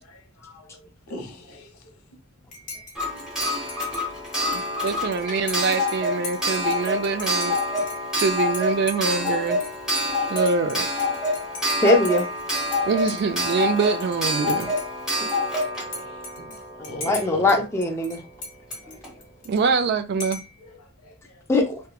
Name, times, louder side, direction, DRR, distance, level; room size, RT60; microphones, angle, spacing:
voice 1, 0.0-2.0 3.3-3.7 11.2-11.7 15.3-17.6 18.8-19.3 19.7-19.8 20.6-21.5, left 1 dB, 85° left, 0.7 m, -43 dB
Dishes pots and pans / Cutlery silverware / Chink clink, 2.5-12.8 13.1-14.2 14.5-17.6 17.8-19.8 20.2-20.6, left 3 dB, 40° left, 0.8 m, -39 dB
Clock, 2.9-17.5 18.7-18.8 19.0-19.1, left 1 dB, 5° right, 1.0 m, -27 dB
voice 2, 4.8-7.6 8.2-9.6 10.3-10.9 12.9-14.7 19.4-20.4, right 5 dB, 50° right, 0.3 m, -24 dB
voice 3, 11.8-12.2 16.8-18.2 18.9-19.0 21.5-21.8, left 2 dB, 15° left, 0.4 m, -21 dB
2.8 x 2.2 x 2.2 m
head